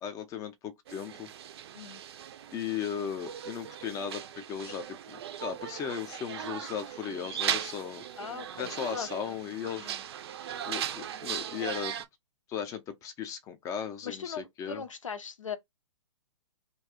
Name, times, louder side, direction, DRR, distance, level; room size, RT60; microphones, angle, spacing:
voice 1, 0.0-1.3 2.5-8.0 8.6-9.9 10.6-12.0 12.5-14.8, left 8 dB, 20° left, 0.5 m, -37 dB
sound 1, 0.9-12.1, right 10 dB, 50° right, 0.5 m, -38 dB
voice 2, 8.2-9.1 9.8-10.0 14.0-15.6, left 6 dB, 80° left, 0.6 m, -39 dB
2.7 x 2.3 x 3.6 m
figure-of-eight pair, 120°, 17 cm